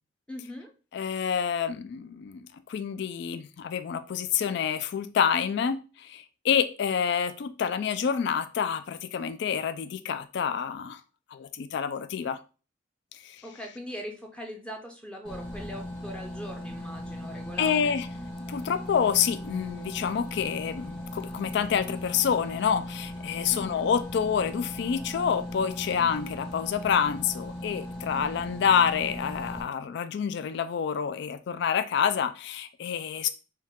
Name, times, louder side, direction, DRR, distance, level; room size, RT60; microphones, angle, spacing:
voice 1, 0.3-0.7 13.4-18.0 23.5-23.9, equal, 5° left, 1 dB, 0.6 m, -41 dB
voice 2, 0.9-11.0 11.3-12.4 13.2-13.4 17.6-18.1 18.5-33.3, left 7 dB, 65° left, 11 dB, 0.3 m, -28 dB
sound 1, 15.2-29.6, left 1 dB, 25° left, 1.6 m, -38 dB
4.5 x 2.3 x 3.6 m, 0.34 s
head